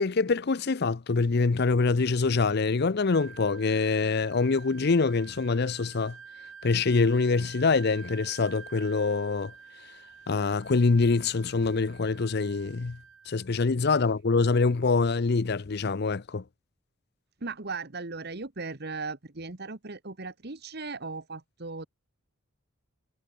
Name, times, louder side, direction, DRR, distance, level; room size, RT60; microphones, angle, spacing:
voice 1, 0.0-6.2 6.6-9.5 10.3-13.0 13.3-16.4, left 4 dB, 50° left, 0.6 m, -25 dB
Wind instrument woodwind instrument, 3.1-13.5, right 6 dB, 70° right, 3.3 m, -49 dB
voice 2, 17.4-21.9, right 3 dB, 50° right, 1.5 m, -37 dB
head